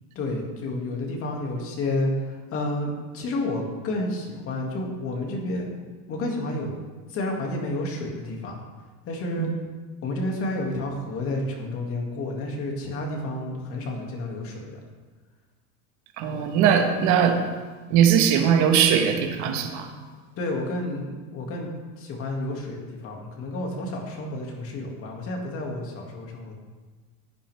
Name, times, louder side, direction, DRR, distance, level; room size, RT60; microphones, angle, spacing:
voice 1, 0.2-5.8 6.1-6.7 7.1-8.6 9.1-9.5 10.0-14.8 20.4-21.7 22.0-26.5, left 1 dB, 30° left, 0 dB, 2.4 m, -30 dB
voice 2, 16.2-17.4 17.9-19.9, right 8 dB, 35° right, 4 dB, 1.5 m, -20 dB
16.0 x 9.9 x 3.6 m, 1.3 s
supercardioid pair, 155°, 48 cm